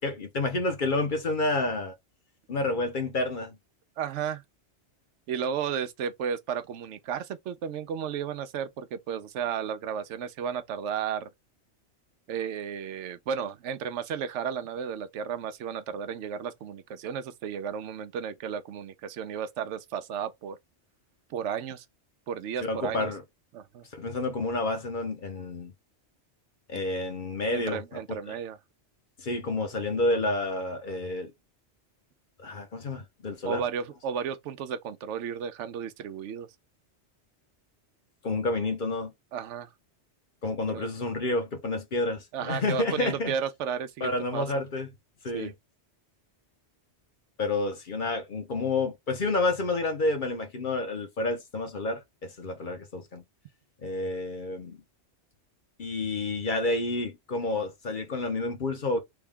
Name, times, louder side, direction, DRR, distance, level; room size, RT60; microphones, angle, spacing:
voice 1, 0.0-1.9 2.5-3.6 22.6-23.2 23.9-25.7 26.7-28.4 29.2-31.3 32.4-33.6 38.2-39.1 40.4-43.3 44.0-44.9 45.2-45.5 47.4-53.2 53.8-54.8 55.8-59.0, left 2 dB, 50° left, 0.9 m, -29 dB
voice 2, 4.0-4.4 5.3-11.3 12.3-20.6 21.3-21.8 22.3-23.1 23.5-23.8 27.5-28.6 33.5-36.5 39.3-39.7 40.7-40.8 42.3-44.5 45.3-45.5, right 7 dB, 80° right, 0.9 m, -33 dB
3.5 x 2.3 x 3.5 m
omnidirectional pair, 1.2 m